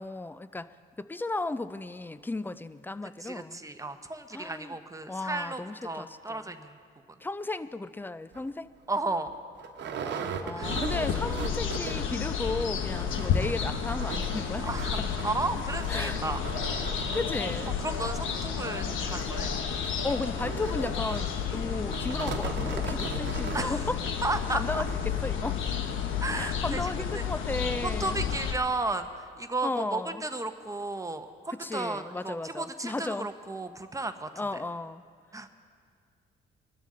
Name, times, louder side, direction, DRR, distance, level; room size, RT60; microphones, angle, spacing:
voice 1, 0.0-3.6 4.3-4.8 5.1-6.5 7.2-8.7 10.4-14.7 15.9-16.2 17.1-17.7 20.0-24.0 24.5-25.6 26.3-28.2 29.6-30.2 31.5-33.3 34.4-35.0, left 2 dB, 10° left, 14 dB, 0.5 m, -35 dB
voice 2, 3.2-6.8 8.9-9.3 10.5-10.8 14.6-16.4 17.8-19.5 23.5-23.8 24.2-24.8 26.2-27.2 27.8-29.1 29.4-34.3 35.3-35.5, right 2 dB, 15° right, 8 dB, 0.9 m, -34 dB
sound 1, 8.3-8.5 9.0-9.1 9.3-12.2 12.5-12.6 12.9-25.7 26.2-26.3 26.7-26.8, right 6 dB, 60° right, 1.1 m, -40 dB
sound 2, 10.6-28.5, left 7 dB, 80° left, 1.1 m, -31 dB
22.0 x 13.0 x 3.8 m, 2.2 s
cardioid pair, 90°, 20 cm